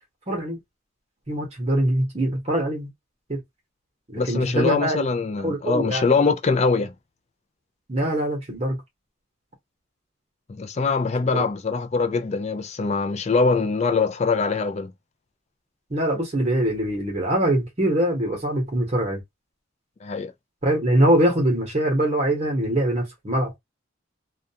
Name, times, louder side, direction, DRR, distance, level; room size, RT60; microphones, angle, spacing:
voice 1, 0.3-0.6 1.3-2.9 3.3-3.4 4.1-5.1 5.4-6.1 7.9-8.8 11.3-11.4 15.9-19.2 20.6-23.6, right 1 dB, 35° right, 0.9 m, -23 dB
voice 2, 4.2-6.9 10.5-14.9 20.0-20.3, left 4 dB, 35° left, 0.4 m, -23 dB
2.4 x 2.3 x 2.7 m
head